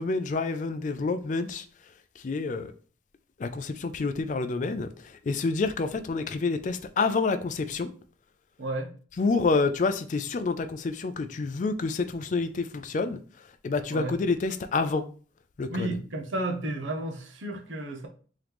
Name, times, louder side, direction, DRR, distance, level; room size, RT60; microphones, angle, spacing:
voice 1, 0.0-1.6 2.2-2.7 3.4-4.9 5.3-7.9 9.2-13.2 13.6-15.0 15.6-15.9, left 4 dB, 40° left, 0.3 m, -28 dB
voice 2, 8.6-8.9 13.9-14.1 15.7-18.1, right 2 dB, 90° right, 0.8 m, -32 dB
3.7 x 3.0 x 3.4 m
head